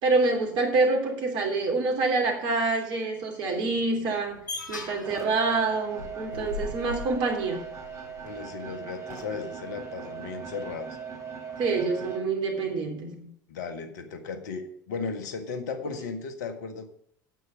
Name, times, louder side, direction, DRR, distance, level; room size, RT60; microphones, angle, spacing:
voice 1, 0.0-4.4 4.7-7.6 11.6-13.3, right 3 dB, 50° right, 2 dB, 3.1 m, -26 dB
sound 1, 4.1-8.3, left 4 dB, 80° left, 4.9 m, -39 dB
sound 2, 5.0-12.2, right 7 dB, 30° right, 3.5 m, -39 dB
voice 2, 8.2-11.0 13.5-16.9, left 5 dB, 65° left, 6 dB, 1.5 m, -36 dB
9.2 x 8.4 x 5.6 m, 0.66 s
figure-of-eight pair, 70°, 10 cm